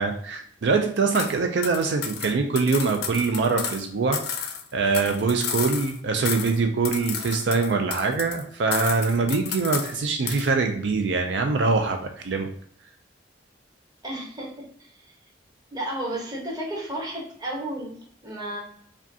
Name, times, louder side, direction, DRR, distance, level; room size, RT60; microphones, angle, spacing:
voice 1, 0.0-12.5, right 4 dB, 75° right, 5 dB, 0.4 m, -24 dB
sound 1, 1.1-1.3 1.6-3.8 4.1-6.0 6.3-6.6 6.8-8.4 8.7-10.0 10.3-10.5, left 7 dB, 60° left, 0.4 m, -32 dB
voice 2, 14.0-15.1 15.7-18.6, right 1 dB, 20° right, -2 dB, 1.0 m, -33 dB
4.8 x 2.3 x 2.7 m, 0.62 s
head